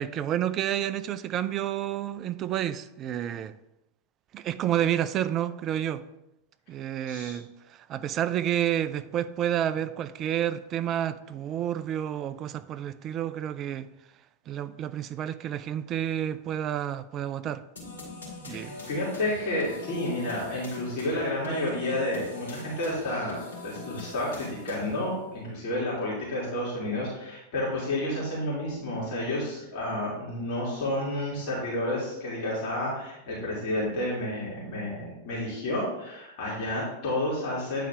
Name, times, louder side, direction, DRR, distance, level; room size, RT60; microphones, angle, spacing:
voice 1, 0.0-3.5 4.3-6.0 6.7-13.9 14.5-17.6 18.4-18.8, right 11 dB, 30° right, 0.4 m, -30 dB
sound 1, 17.8-25.1, left 2 dB, 70° left, 2.2 m, -43 dB
voice 2, 18.4-37.9, left 1 dB, 45° left, 2.7 m, -30 dB
9.2 x 4.1 x 3.5 m
figure-of-eight pair, 90°, 0 cm